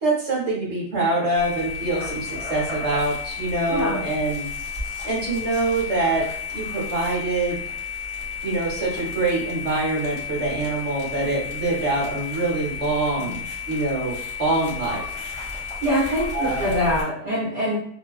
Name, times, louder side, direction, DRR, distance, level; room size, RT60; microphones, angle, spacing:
voice 1, 0.0-4.5 5.0-6.2 6.5-7.6 8.4-15.0 16.3-16.7, right 2 dB, 35° right, -5 dB, 0.9 m, -25 dB
sound 1, 1.3-17.0, left 6 dB, 30° left, 0.7 m, -32 dB
voice 2, 3.7-4.0 13.1-13.3 15.8-17.8, equal, 60° right, -6 dB, 0.8 m, -24 dB
2.5 x 2.2 x 2.3 m, 0.63 s
omnidirectional pair, 1.1 m